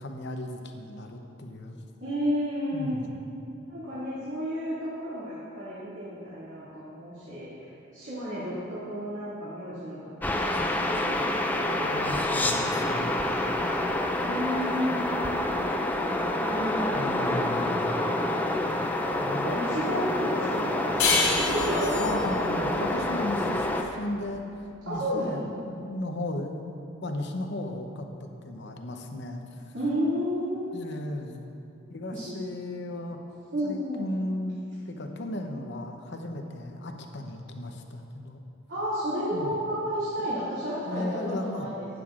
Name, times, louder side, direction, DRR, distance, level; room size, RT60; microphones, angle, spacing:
voice 1, 0.0-1.8 2.7-3.1 11.7-13.2 16.9-18.0 19.2-19.5 22.0-26.8 27.0-29.6 30.7-31.4 31.9-33.2 33.6-38.4 39.3-39.6 40.9-41.7, left 1 dB, 55° left, 4 dB, 0.8 m, -35 dB
voice 2, 2.0-3.0 3.7-12.0 13.2-13.9 14.2-15.1 16.5-17.8 19.2-22.0 24.9-25.4 29.7-30.7 32.1-32.4 33.5-34.0 38.7-41.9, equal, 60° right, -11 dB, 2.4 m, -32 dB
sound 1, 10.2-23.8, left 1 dB, 10° left, 0.4 m, -27 dB
sound 2, 21.0-24.2, left 4 dB, 90° left, 1.5 m, -28 dB
13.0 x 9.1 x 2.5 m, 2.7 s
head